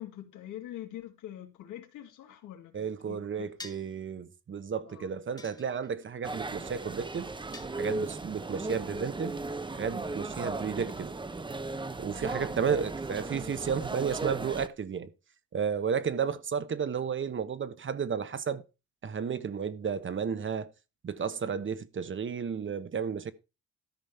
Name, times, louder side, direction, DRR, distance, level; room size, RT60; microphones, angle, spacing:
voice 1, 0.0-3.5 4.9-5.1, left 12 dB, 85° left, 2.5 m, -44 dB
voice 2, 2.7-7.3 7.7-9.4 9.8-11.1 12.0-15.1 15.5-18.6 19.0-20.7 21.0-23.3, right 7 dB, 40° right, 1.1 m, -32 dB
sound 1, 3.6-4.0 5.4-6.1 7.5-8.3, left 2 dB, 15° left, 1.6 m, -47 dB
sound 2, 6.2-14.7, right 3 dB, 15° right, 0.9 m, -36 dB
13.0 x 5.2 x 5.7 m
cardioid pair, 90°, 30 cm